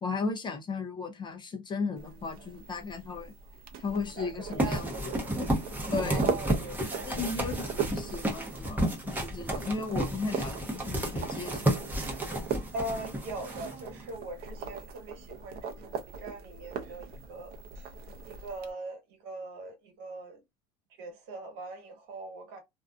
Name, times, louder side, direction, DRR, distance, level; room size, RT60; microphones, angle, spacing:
voice 1, 0.0-3.3 3.8-5.1 5.9-6.3 7.1-11.9, left 4 dB, 20° left, 0.5 m, -35 dB
sound 1, 2.0-18.7, right 6 dB, 45° right, 0.6 m, -40 dB
voice 2, 4.2-5.3 6.0-7.6 12.7-17.9 18.3-20.4 21.0-22.6, right 2 dB, 65° right, 1.3 m, -41 dB
sound 2, 4.6-14.1, right 1 dB, 10° right, 0.7 m, -32 dB
2.6 x 2.3 x 2.2 m
supercardioid pair, 125°, 21 cm